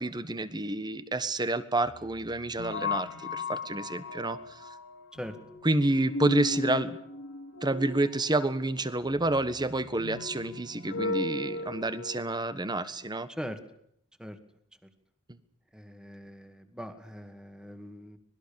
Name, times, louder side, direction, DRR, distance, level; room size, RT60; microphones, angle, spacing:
voice 1, 0.0-4.6 5.6-7.0 7.6-13.3 15.3-15.4, right 2 dB, 20° right, 13 dB, 1.3 m, -29 dB
sound 1, 1.8-12.3, left 3 dB, 55° left, 2.6 m, -37 dB
voice 2, 13.3-13.6 14.2-14.4 15.7-18.2, equal, 5° right, 8 dB, 2.1 m, -41 dB
25.5 x 20.0 x 7.1 m, 0.69 s
head